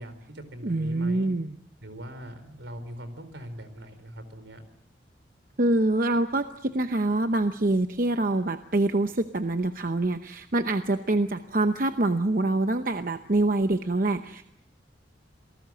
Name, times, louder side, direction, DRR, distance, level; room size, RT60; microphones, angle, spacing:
voice 1, 0.0-1.3 1.8-4.6, equal, 75° right, 10 dB, 4.1 m, -41 dB
voice 2, 0.6-1.5 5.6-14.4, right 2 dB, 45° right, 8 dB, 0.9 m, -25 dB
27.5 x 18.5 x 7.7 m, 0.74 s
head